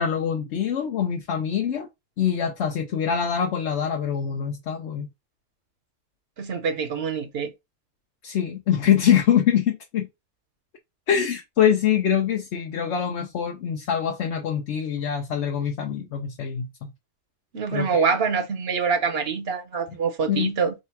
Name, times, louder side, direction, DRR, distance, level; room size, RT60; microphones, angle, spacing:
voice 1, 0.0-1.9 2.2-5.1 8.2-10.1 11.1-16.9 17.7-18.0 20.3-20.5, left 8 dB, 80° left, 1.0 m, -24 dB
voice 2, 6.4-7.5 17.5-20.7, right 5 dB, 65° right, 1.0 m, -25 dB
3.2 x 2.8 x 4.5 m
omnidirectional pair, 1.2 m